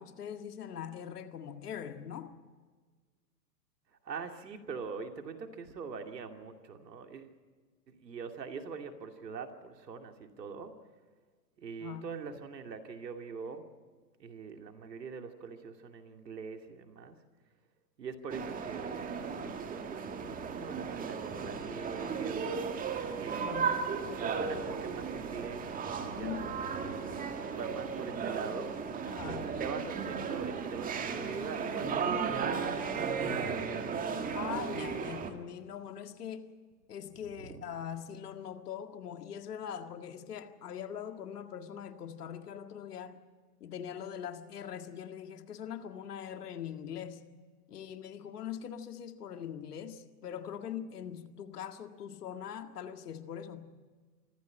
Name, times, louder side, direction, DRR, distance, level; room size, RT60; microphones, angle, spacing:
voice 1, 0.0-2.4 11.8-12.1 23.4-23.9 26.1-26.6 29.1-29.5 34.3-36.5 36.9-43.2 43.6-47.3 47.7-53.7, left 9 dB, 65° left, 1.9 m, -42 dB
voice 2, 4.0-7.3 7.9-10.8 11.6-13.7 14.2-17.2 18.0-19.1 19.4-22.8 23.2-23.5 24.1-25.8 26.0-27.1 27.6-32.1 32.4-33.1 37.4-37.6, right 5 dB, 75° right, 2.6 m, -43 dB
sound 1, 18.3-35.3, right 5 dB, 15° right, 1.6 m, -35 dB
25.0 x 15.0 x 8.8 m
hypercardioid pair, 120°, 49 cm